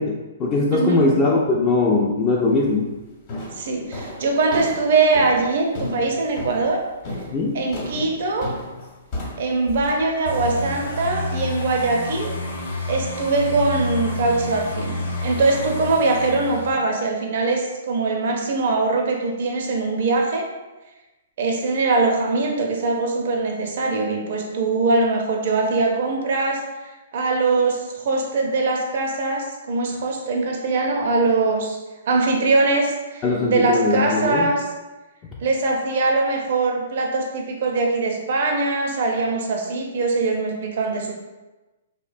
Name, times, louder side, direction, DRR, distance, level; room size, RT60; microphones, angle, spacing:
voice 1, 0.0-3.0 7.3-7.6 33.2-34.5, left 3 dB, 25° left, -3 dB, 0.3 m, -20 dB
voice 2, 0.7-1.1 3.6-6.8 7.5-8.5 9.4-12.4 12.9-20.5 21.4-31.8 32.1-34.7 35.4-41.1, right 3 dB, 60° right, 1 dB, 0.4 m, -22 dB
sound 1, 2.4-2.8 3.3-11.3, left 1 dB, 40° left, 0.9 m, -35 dB
sound 2, 10.2-16.7, left 2 dB, 85° left, 0.7 m, -29 dB
2.7 x 2.1 x 2.5 m, 1.1 s
hypercardioid pair, 135°, 0 cm